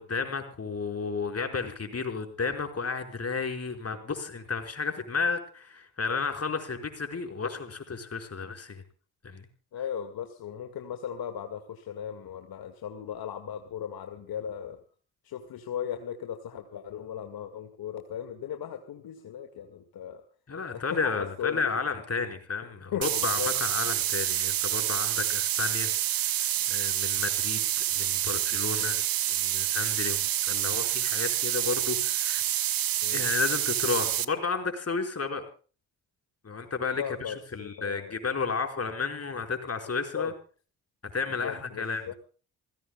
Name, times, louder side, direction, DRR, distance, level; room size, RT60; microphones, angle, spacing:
voice 1, 0.0-8.8 9.2-9.5 20.5-32.4 33.1-35.4 36.4-40.3 41.1-42.1, left 4 dB, 35° left, 4 dB, 5.1 m, -32 dB
voice 2, 9.7-14.8 15.2-20.2 20.7-21.8 22.9-23.5 25.1-25.2 28.8-29.1 33.0-33.3 36.9-38.1 40.1-40.3 41.3-42.1, left 9 dB, 55° left, 6 dB, 2.1 m, -37 dB
sound 1, 23.0-34.2, right 12 dB, 55° right, 1.1 m, -28 dB
28.5 x 16.0 x 2.3 m, 0.40 s
hypercardioid pair, 45°, 41 cm